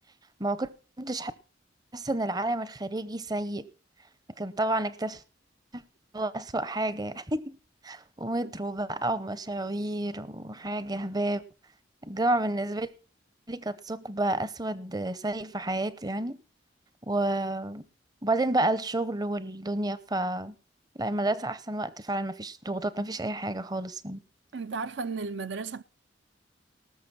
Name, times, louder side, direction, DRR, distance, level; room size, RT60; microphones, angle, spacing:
voice 1, 1.0-1.3 1.9-3.7 4.4-5.2 5.7-5.8 6.1-7.5 7.8-11.4 12.0-12.9 13.5-16.4 17.1-17.8 18.2-20.5 20.9-24.2, right 2 dB, 20° right, 0.7 m, -30 dB
voice 2, 24.5-25.8, right 4 dB, 65° right, 0.6 m, -34 dB
19.0 x 6.7 x 5.8 m
head